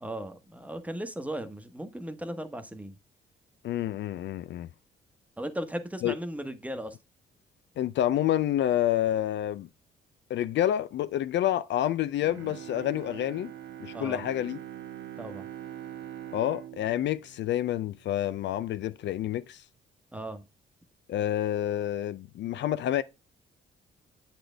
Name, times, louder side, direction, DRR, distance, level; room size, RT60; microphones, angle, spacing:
voice 1, 0.0-3.0 5.4-7.0 13.9-14.2 15.2-15.5 20.1-20.4, right 1 dB, 5° right, 1.0 m, -36 dB
voice 2, 3.6-4.7 6.0-6.2 7.8-9.7 10.3-13.5 13.8-14.6 16.3-19.6 21.1-23.0, left 12 dB, 65° left, 0.4 m, -28 dB
Bowed string instrument, 12.2-18.4 18.8-18.9, right 11 dB, 75° right, 1.1 m, -43 dB
7.7 x 4.3 x 3.3 m
cardioid pair, 90°, 20 cm